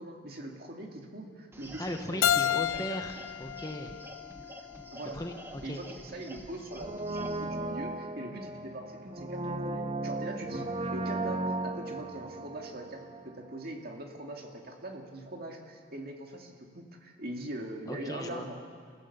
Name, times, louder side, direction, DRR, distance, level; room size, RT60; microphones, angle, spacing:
voice 1, 0.0-3.0 4.9-5.2 5.6-18.6, right 1 dB, 45° right, 1 dB, 2.4 m, -42 dB
sound 1, 1.5-7.4, right 1 dB, 10° right, 1.3 m, -48 dB
voice 2, 1.8-3.9 5.1-5.8 17.9-18.5, left 1 dB, 15° left, 5 dB, 1.0 m, -38 dB
Keyboard (musical), 2.2-5.0, left 10 dB, 80° left, 0.4 m, -31 dB
Brass instrument, 6.8-13.7 13.9-14.0, right 2 dB, 30° right, 0.7 m, -36 dB
29.0 x 15.5 x 6.9 m, 2.1 s
head